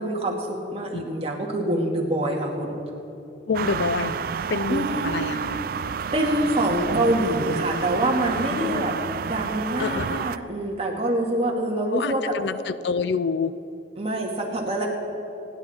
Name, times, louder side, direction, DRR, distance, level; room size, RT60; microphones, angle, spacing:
voice 1, 0.0-2.8 4.7-5.1 6.1-8.9 9.2-12.3 14.0-14.9, right 1 dB, 30° right, -1 dB, 2.1 m, -25 dB
voice 2, 3.5-4.1 4.5-5.6 8.5-8.9 9.8-10.3 11.9-13.5, left 4 dB, 65° left, 15 dB, 0.4 m, -27 dB
sound 1, 3.5-10.4, right 6 dB, 50° right, 0.4 m, -29 dB
28.0 x 10.5 x 4.4 m, 3.0 s
head